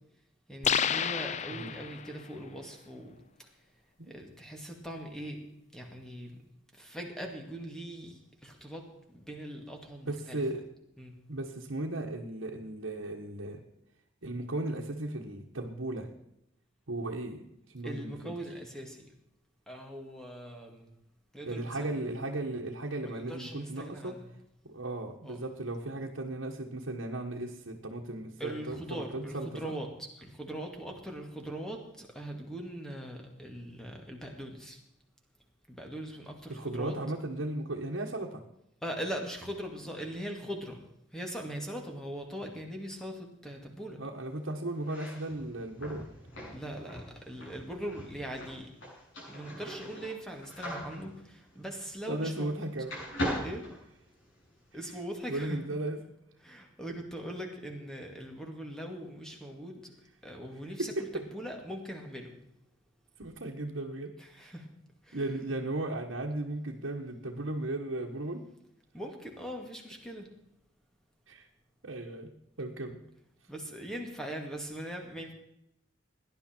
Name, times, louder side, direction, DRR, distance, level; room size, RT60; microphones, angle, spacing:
voice 1, 0.5-3.5 4.1-5.4 5.7-6.3 6.7-10.4 11.0-11.1 17.8-19.1 19.7-20.9 21.3-21.9 23.0-24.3 25.2-25.4 28.4-34.8 35.7-36.9 38.8-40.8 41.1-44.0 46.5-48.7 49.3-52.7 53.4-53.7 54.7-55.6 56.4-59.9 60.2-62.3 64.2-64.7 65.0-65.2 68.9-70.3 73.5-75.3, right 1 dB, 5° left, 2 dB, 2.2 m, -41 dB
sound 1, 0.6-2.2, left 8 dB, 35° left, 0.5 m, -30 dB
voice 2, 10.1-10.6 11.3-13.6 14.2-16.1 16.9-17.4 17.7-18.3 21.4-24.1 24.6-29.7 36.5-38.4 44.0-46.1 52.1-52.9 55.3-56.0 60.8-61.2 63.2-64.5 65.1-68.4 71.3-71.5 71.8-72.3 72.6-73.0, right 2 dB, 80° right, -1 dB, 1.5 m, -36 dB
sound 2, 44.8-52.6 52.9-54.5, equal, 70° left, 7.2 m, -40 dB
17.5 x 11.0 x 4.5 m, 0.82 s
head